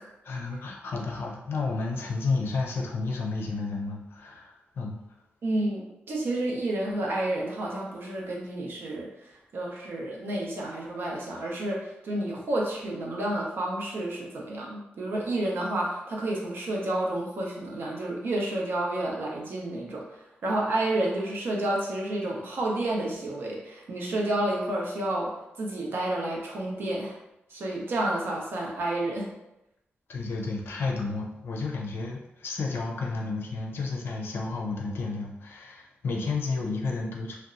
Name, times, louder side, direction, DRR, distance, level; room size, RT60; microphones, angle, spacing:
voice 1, 0.2-5.0 30.1-37.4, left 3 dB, 70° left, 0 dB, 0.5 m, -31 dB
voice 2, 5.4-27.2 27.5-29.3, right 1 dB, 65° right, -2 dB, 0.6 m, -30 dB
2.8 x 2.1 x 2.5 m, 0.89 s
wide cardioid pair, 110°, 4 cm